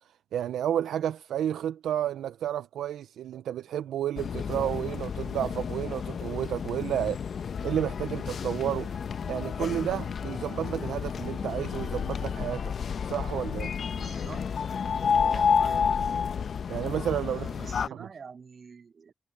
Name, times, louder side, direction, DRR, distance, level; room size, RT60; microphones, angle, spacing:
voice 1, 0.3-7.2 7.6-9.0 9.3-12.7 13.0-13.7 16.7-17.5 17.9-18.1, right 10 dB, 85° right, 0.5 m, -31 dB
sound 1, 4.2-17.9, left 6 dB, 65° left, 1.0 m, -30 dB
voice 2, 13.9-14.5 15.2-15.9 17.3-19.1, right 5 dB, 55° right, 8.0 m, -46 dB
cardioid pair, 60°, 0 cm